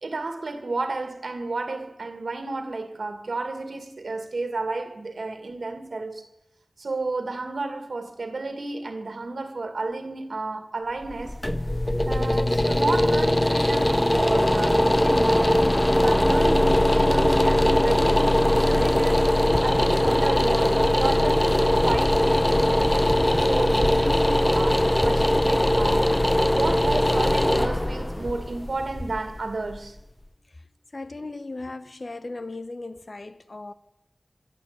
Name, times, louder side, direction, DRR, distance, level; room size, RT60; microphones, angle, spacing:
voice 1, 0.0-6.2 6.8-11.4 12.0-15.7 16.0-19.3 19.6-23.0 23.4-30.0, right 3 dB, 90° right, 2.2 m, -32 dB
sound 1, 11.0-30.0, left 1 dB, 20° left, 0.8 m, -21 dB
voice 2, 30.9-33.7, left 2 dB, 60° left, 1.1 m, -37 dB
25.5 x 12.5 x 8.3 m
wide cardioid pair, 45°, 0 cm